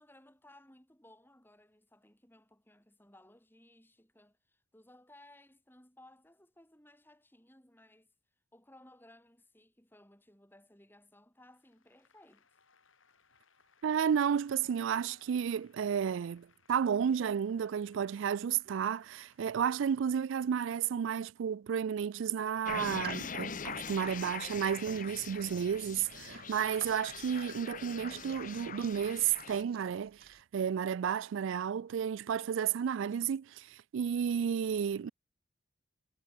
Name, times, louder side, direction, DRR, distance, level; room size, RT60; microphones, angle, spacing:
voice 1, 0.0-8.1 8.5-12.5, left 1 dB, 10° left, 6.3 m, -60 dB
Applause, 11.5-19.4, left 5 dB, 80° left, 6.5 m, -68 dB
voice 2, 13.8-35.1, right 8 dB, 70° right, 0.3 m, -32 dB
sound 1, 22.6-29.6, left 6 dB, 40° left, 1.1 m, -43 dB
sound 2, 23.0-30.4, right 5 dB, 50° right, 1.4 m, -52 dB
head